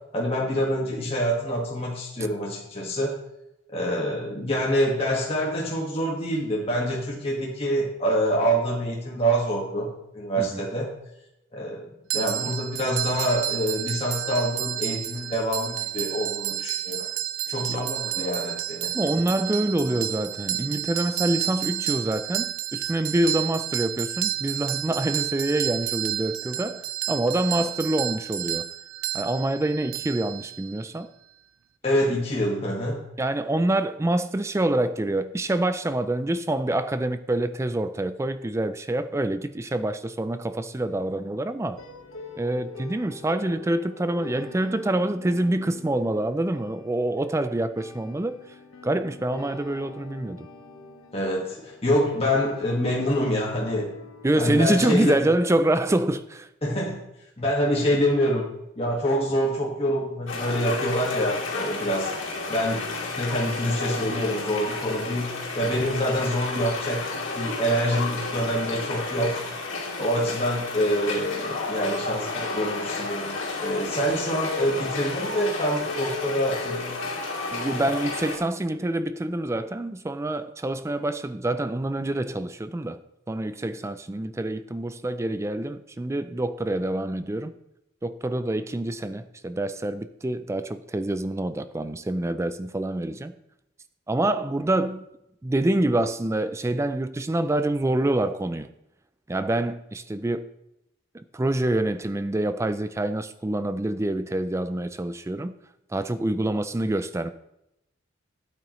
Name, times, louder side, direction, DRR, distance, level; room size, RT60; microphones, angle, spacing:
voice 1, 0.1-3.1 3.7-9.9 10.1-10.9 11.5-11.9 12.1-17.1 17.5-18.9 31.8-33.0 51.1-53.9 54.4-55.3 56.6-57.0 57.4-67.0 67.4-69.4 70.0-77.0 77.7-77.9, equal, 30° left, 1.7 m, -26 dB
sound 1, 12.1-30.9, right 13 dB, 85° right, 0.6 m, -31 dB
voice 2, 18.9-28.7 29.1-31.1 33.2-41.8 42.4-48.6 48.8-50.5 54.2-56.5 77.5-83.0 83.3-87.5 88.0-93.3 94.1-95.1 95.4-98.7 99.3-100.5 101.1-105.6 105.9-107.3, right 1 dB, 15° right, 0.3 m, -26 dB
sound 2, 40.8-55.7, left 3 dB, 85° left, 1.4 m, -44 dB
sound 3, 60.3-78.4, left 3 dB, 65° left, 2.6 m, -32 dB
12.5 x 8.8 x 3.1 m
head